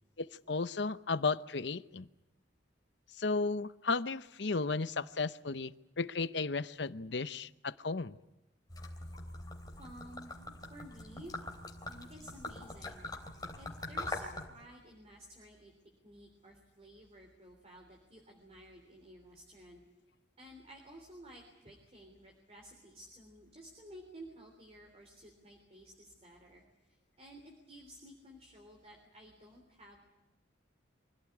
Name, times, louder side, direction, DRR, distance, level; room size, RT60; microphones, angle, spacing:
voice 1, 0.2-2.1 3.2-8.2, left 4 dB, 65° left, 14 dB, 0.8 m, -34 dB
Gurgling / Liquid, 8.7-14.5, left 2 dB, 20° left, 3.4 m, -43 dB
voice 2, 9.8-10.3 10.7-11.3 11.9-13.1 13.6-15.7 16.0-19.8 20.4-30.0, equal, 35° right, 2 dB, 3.4 m, -54 dB
25.5 x 16.5 x 9.7 m, 1.0 s
head